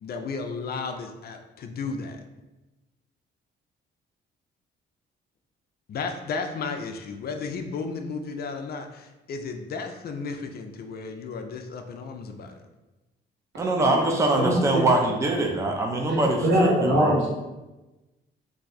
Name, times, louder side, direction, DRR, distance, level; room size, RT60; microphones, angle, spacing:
voice 1, 0.0-2.2 5.9-12.6, left 4 dB, 50° left, 5 dB, 0.4 m, -34 dB
voice 2, 13.6-17.1, right 2 dB, 15° right, 1 dB, 0.5 m, -23 dB
voice 3, 14.3-14.8 16.1-17.3, right 1 dB, 70° right, -4 dB, 1.1 m, -22 dB
2.6 x 2.3 x 3.9 m, 1.1 s
cardioid pair, 90°, 20 cm